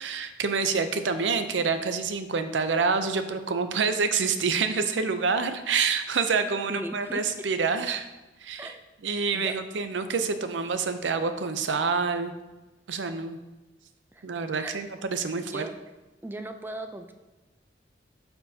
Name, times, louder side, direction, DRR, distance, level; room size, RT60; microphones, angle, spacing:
voice 1, 0.0-8.1 8.4-8.7 9.0-12.3 12.9-13.4 14.2-15.6, right 5 dB, 90° right, 9 dB, 0.6 m, -27 dB
voice 2, 6.7-7.2 8.6-8.8 9.3-9.5 14.1-14.8 15.4-15.7 16.2-17.1, right 1 dB, 10° right, 6 dB, 0.4 m, -37 dB
12.0 x 4.5 x 2.7 m, 1.1 s
head